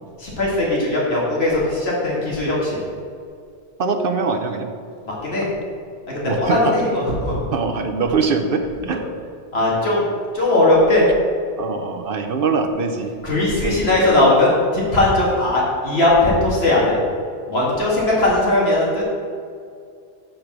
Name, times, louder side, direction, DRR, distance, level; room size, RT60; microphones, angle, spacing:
voice 1, 0.2-2.8 5.0-5.5 6.1-7.4 9.5-10.0 10.3-11.1 13.2-17.0 17.5-19.0, left 2 dB, 60° left, -5 dB, 2.4 m, -18 dB
voice 2, 3.8-4.7 6.3-6.7 7.5-9.0 11.6-13.1 13.6-13.8, right 4 dB, 55° right, 6 dB, 0.8 m, -22 dB
7.7 x 5.1 x 6.0 m, 2.3 s
omnidirectional pair, 1.2 m